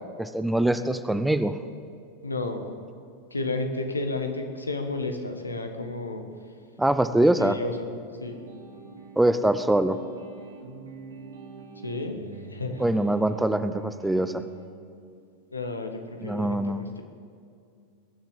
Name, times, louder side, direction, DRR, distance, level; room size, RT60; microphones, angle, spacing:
voice 1, 0.2-1.6 6.8-7.6 9.2-10.0 12.8-14.4 16.2-16.8, right 1 dB, 5° right, 11 dB, 0.5 m, -23 dB
voice 2, 2.2-2.6 3.3-6.2 7.1-7.9 8.2-8.4 11.8-13.0 15.5-17.0, left 2 dB, 80° left, 5 dB, 1.4 m, -32 dB
sound 1, 8.1-14.7, right 4 dB, 65° right, 2.2 m, -44 dB
21.0 x 7.3 x 7.3 m, 2.4 s
figure-of-eight pair, 90°, 0 cm